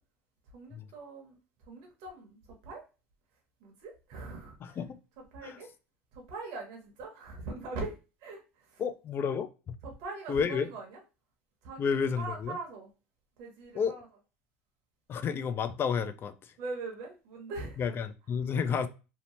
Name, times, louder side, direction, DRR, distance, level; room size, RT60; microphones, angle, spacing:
voice 1, 0.5-1.4 1.7-2.8 3.6-4.8 5.3-5.7 6.1-8.8 9.8-11.0 11.6-12.9 13.4-14.1 16.6-17.8 18.5-18.7, right 3 dB, 65° right, 0.9 m, -42 dB
voice 2, 4.6-5.0 5.4-5.6 8.8-9.7 10.3-10.7 11.8-12.6 13.7-14.0 15.1-16.3 17.8-18.9, left 6 dB, 35° left, 0.4 m, -31 dB
2.8 x 2.1 x 3.0 m
supercardioid pair, 95°, 7 cm